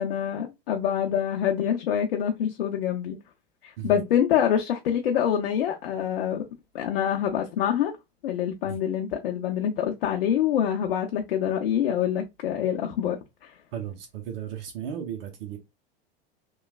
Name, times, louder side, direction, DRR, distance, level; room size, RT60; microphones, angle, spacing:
voice 1, 0.0-3.2 3.6-6.4 6.7-7.9 8.2-13.5, left 9 dB, 80° left, 0.6 m, -26 dB
voice 2, 13.7-15.6, right 9 dB, 70° right, 0.7 m, -35 dB
3.1 x 2.2 x 2.3 m
hypercardioid pair, 100°, 29 cm